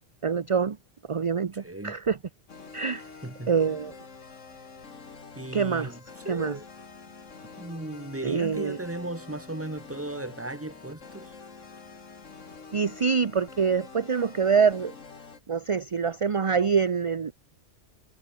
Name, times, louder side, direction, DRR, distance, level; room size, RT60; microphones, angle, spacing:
voice 1, 0.2-0.8 1.1-2.2 2.7-3.0 3.5-3.9 5.5-5.9 6.3-6.5 8.2-8.8 12.7-14.9 15.5-17.3, right 6 dB, 35° right, 0.6 m, -25 dB
voice 2, 1.5-2.0 3.2-3.8 5.3-6.6 7.4-11.3, right 1 dB, 10° right, 1.5 m, -37 dB
sound 1, 2.5-15.4, left 4 dB, 85° left, 2.5 m, -47 dB
omnidirectional pair, 1.3 m